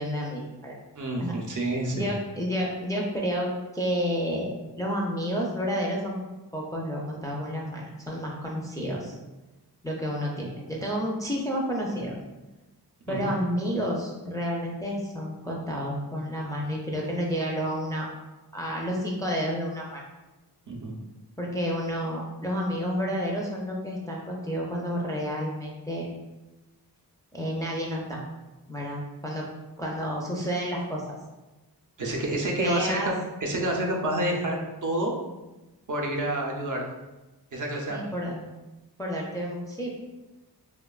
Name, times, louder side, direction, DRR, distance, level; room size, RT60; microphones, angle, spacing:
voice 1, 0.0-0.8 1.2-1.3 1.9-6.2 6.5-9.2 9.8-12.2 13.1-18.1 18.5-20.0 21.4-26.1 27.3-28.2 28.7-29.4 29.8-31.2 32.6-33.1 37.9-38.4 39.0-39.9, equal, 10° left, -2 dB, 0.3 m, -30 dB
voice 2, 1.0-2.1 13.1-13.3 20.7-20.9 32.0-33.1 33.4-35.1 35.9-36.8 37.5-38.0, right 1 dB, 50° right, -1 dB, 0.5 m, -28 dB
2.8 x 2.1 x 2.3 m, 1.1 s
wide cardioid pair, 65°, 40 cm